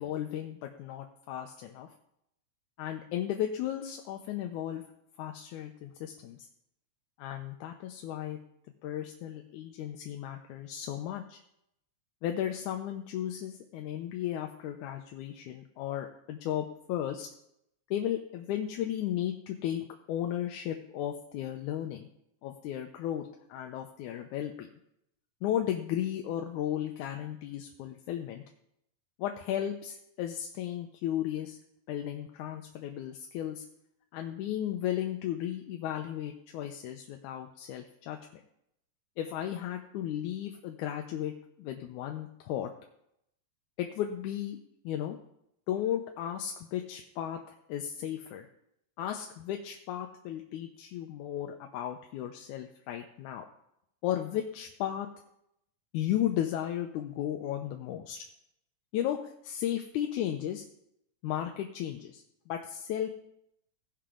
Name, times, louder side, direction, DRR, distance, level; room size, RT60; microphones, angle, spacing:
voice 1, 0.0-1.9 2.8-4.8 5.2-6.5 7.2-8.4 8.8-11.4 12.2-17.3 17.9-22.1 22.4-24.7 25.4-28.4 29.2-31.6 31.9-33.6 34.1-38.2 39.2-42.7 43.8-44.6 44.8-45.2 45.7-47.4 47.7-48.5 49.0-53.5 54.0-55.1 55.9-58.2 58.9-60.6 61.2-63.1, left 11 dB, 85° left, 4 dB, 2.1 m, -35 dB
17.0 x 5.7 x 3.7 m, 0.77 s
omnidirectional pair, 3.5 m